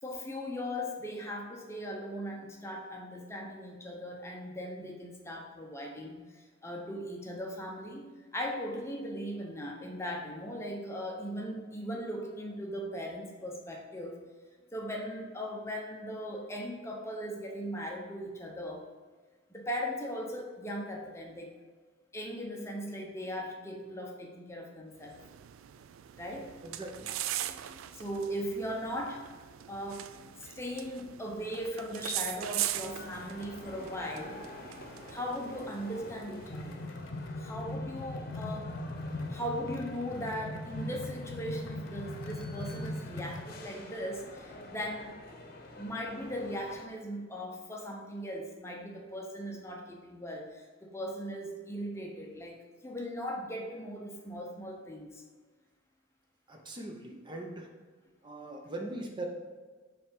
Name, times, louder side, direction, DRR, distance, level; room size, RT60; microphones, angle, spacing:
voice 1, 0.0-8.0 8.3-14.2 14.7-18.9 19.5-21.5 22.1-25.2 26.2-26.5 27.4-29.3 29.7-34.4 35.1-36.8 37.4-38.7 39.3-45.2 45.8-55.2, equal, 15° left, 0 dB, 0.7 m, -38 dB
sound 1, 25.0-36.8, right 13 dB, 85° right, 0.3 m, -41 dB
voice 2, 26.6-27.1 56.5-57.7 58.2-59.2, right 2 dB, 25° right, 1 dB, 0.7 m, -40 dB
sound 2, 32.7-46.8, left 1 dB, 50° left, 0.9 m, -48 dB
sound 3, 36.0-43.5, left 1 dB, 80° left, 0.6 m, -40 dB
7.0 x 3.3 x 5.2 m, 1.4 s
head